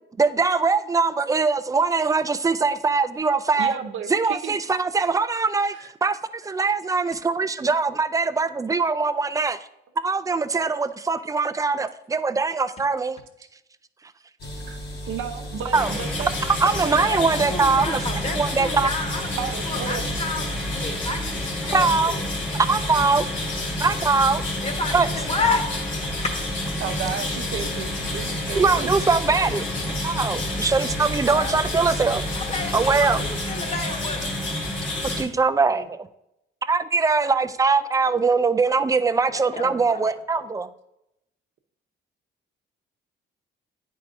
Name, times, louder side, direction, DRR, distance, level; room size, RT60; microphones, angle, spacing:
voice 1, 0.2-3.8 4.1-5.7 6.0-9.6 10.0-13.2 15.7-15.9 16.6-18.0 18.3-18.9 21.7-22.1 22.6-23.3 23.8-24.4 24.9-25.1 28.6-29.6 30.0-32.2 32.7-33.2 35.2-36.1 36.7-40.7, right 4 dB, 15° right, 11 dB, 0.4 m, -22 dB
voice 2, 3.6-4.6 5.6-5.9 14.7-14.8 15.1-16.3 16.7-17.0 19.4-20.1 26.8-28.9 37.3-37.4, right 7 dB, 75° right, 6 dB, 0.7 m, -33 dB
sound 1, 14.4-33.4, equal, 55° left, 1.6 m, -36 dB
sound 2, 15.7-35.2, left 1 dB, 70° left, 2.2 m, -29 dB
voice 3, 16.9-22.2 24.6-25.6 28.5-28.8 31.3-31.6 32.3-34.3 35.7-35.8 39.3-40.4, left 3 dB, 30° left, 4 dB, 1.3 m, -31 dB
9.8 x 4.7 x 2.5 m, 0.84 s
cardioid pair, 90°, 20 cm